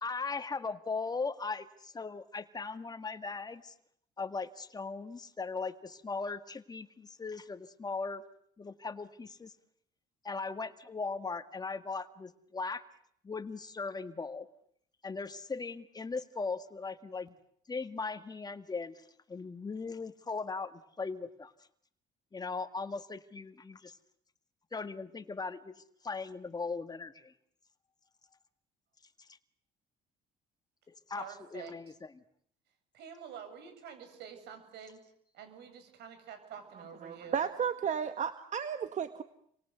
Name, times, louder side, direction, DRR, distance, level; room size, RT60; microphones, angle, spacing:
voice 1, 0.0-3.7 4.2-8.2 8.6-9.5 10.2-12.8 13.2-14.5 15.0-17.3 17.7-19.0 19.3-21.5 22.3-24.0 24.7-27.3 30.9-31.3 31.5-32.2, left 4 dB, 25° left, 10 dB, 1.9 m, -38 dB
voice 2, 31.1-31.9 32.9-37.4, right 7 dB, 80° right, 8 dB, 7.9 m, -48 dB
voice 3, 37.0-39.2, right 7 dB, 45° right, 9 dB, 1.7 m, -33 dB
30.0 x 24.5 x 8.1 m, 0.69 s
cardioid pair, 110°, 17 cm